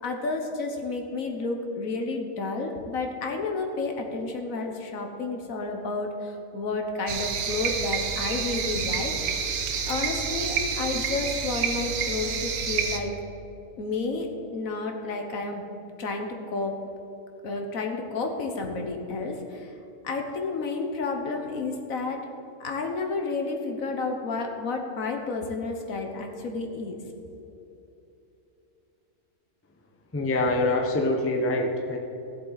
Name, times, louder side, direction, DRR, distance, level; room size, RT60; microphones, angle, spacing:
voice 1, 0.0-9.1 9.8-13.2 13.8-15.6 16.0-16.7 17.4-19.7 20.0-22.2 22.6-27.0, left 3 dB, 65° left, 3 dB, 1.5 m, -31 dB
sound 1, 7.1-13.0, right 6 dB, 75° right, 1.3 m, -29 dB
voice 2, 30.1-32.0, left 2 dB, 10° left, 2 dB, 0.7 m, -25 dB
16.0 x 7.6 x 4.0 m, 2.9 s
omnidirectional pair, 1.6 m